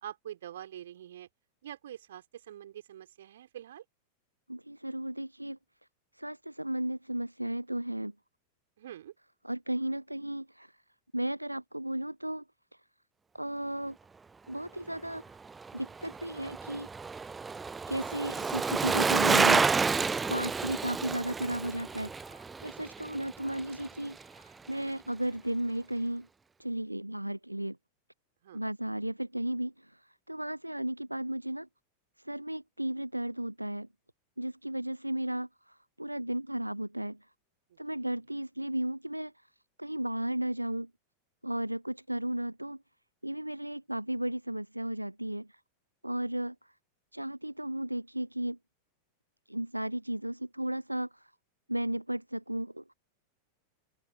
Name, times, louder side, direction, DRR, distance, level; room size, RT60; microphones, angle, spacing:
voice 1, 0.0-1.3 1.6-3.8 8.8-9.1 20.7-20.8 28.4-28.6 37.7-38.1, right 11 dB, 60° right, 4.3 m, -45 dB
voice 2, 4.5-5.6 6.1-8.1 9.4-10.8 11.1-12.4 12.7-12.8 13.3-14.0 14.5-15.2 15.7-16.9 17.9-19.7 20.2-26.3 26.6-27.8 28.5-31.7 32.2-33.9 34.4-37.2 37.8-39.5 39.8-40.9 41.4-42.8 43.2-45.6 46.0-46.7 47.1-48.6 49.5-51.3 51.7-52.9, right 1 dB, 85° right, 0.6 m, -34 dB
Bicycle, 15.5-23.9 24.2-24.3, right 4 dB, 15° right, 0.5 m, -30 dB
open air
figure-of-eight pair, 90°, 0 cm